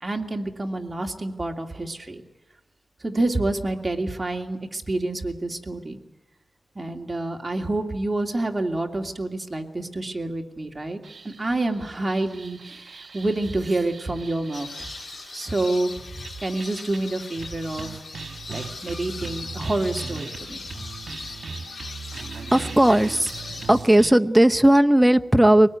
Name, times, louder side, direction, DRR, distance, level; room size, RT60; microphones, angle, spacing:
voice 1, 0.0-2.2 3.0-6.0 6.7-14.9 15.3-17.9 18.5-20.8, right 2 dB, 20° right, 2 dB, 2.6 m, -28 dB
sound 1, 11.0-15.6 16.2-17.0 17.4-24.1, right 5 dB, 75° right, 1.3 m, -39 dB
sound 2, 14.5-23.8, left 3 dB, 70° left, 2.5 m, -39 dB
voice 2, 22.5-23.3 23.7-25.7, right 1 dB, 5° right, 8 dB, 0.8 m, -16 dB
23.5 x 19.0 x 9.4 m, 1.1 s
wide cardioid pair, 110°, 0 cm